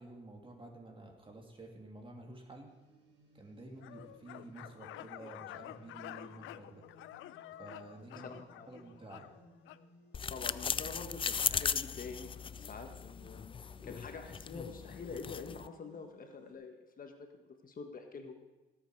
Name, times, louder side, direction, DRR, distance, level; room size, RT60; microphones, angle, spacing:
voice 1, 0.0-2.7 3.3-6.8 7.6-8.3 8.7-9.3, right 2 dB, 25° right, 2 dB, 2.6 m, -51 dB
sound 1, 2.7-16.5, equal, 60° right, 4.5 m, -63 dB
sound 2, 3.8-9.9, left 13 dB, 85° left, 0.5 m, -49 dB
voice 2, 8.1-8.7 10.3-13.4 13.8-18.3, left 4 dB, 45° left, 4 dB, 1.5 m, -46 dB
sound 3, 10.1-15.7, left 6 dB, 25° left, 0.4 m, -37 dB
18.0 x 8.2 x 4.7 m, 1.2 s
cardioid pair, 90°, 20 cm